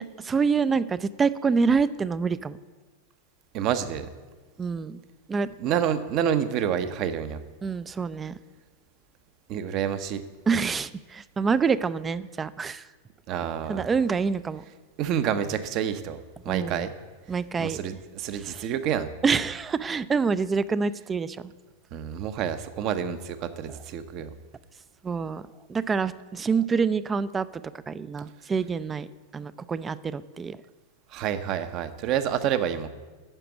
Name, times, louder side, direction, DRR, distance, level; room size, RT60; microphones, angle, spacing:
voice 1, 0.0-2.6 4.6-5.0 5.3-5.5 7.6-8.4 10.5-12.8 13.7-14.6 16.5-16.9 17.3-17.8 18.5-18.6 19.2-21.4 25.0-25.4 25.7-27.5 27.9-29.1 29.3-30.6, right 5 dB, 15° right, 16 dB, 0.4 m, -26 dB
voice 2, 3.5-4.1 5.6-7.4 9.5-10.2 13.3-13.8 15.0-16.9 17.6-19.1 21.9-24.3 31.1-32.9, right 9 dB, 40° right, 11 dB, 0.8 m, -28 dB
9.0 x 6.7 x 8.2 m, 1.3 s
figure-of-eight pair, 90°, 0 cm